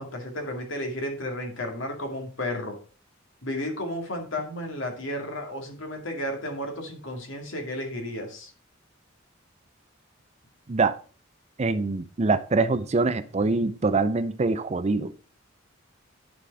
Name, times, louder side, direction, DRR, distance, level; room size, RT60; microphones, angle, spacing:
voice 1, 0.0-2.8 3.4-8.5, left 1 dB, 70° left, 2.3 m, -33 dB
voice 2, 11.6-15.1, right 3 dB, 35° right, 0.5 m, -24 dB
10.0 x 5.1 x 4.7 m
head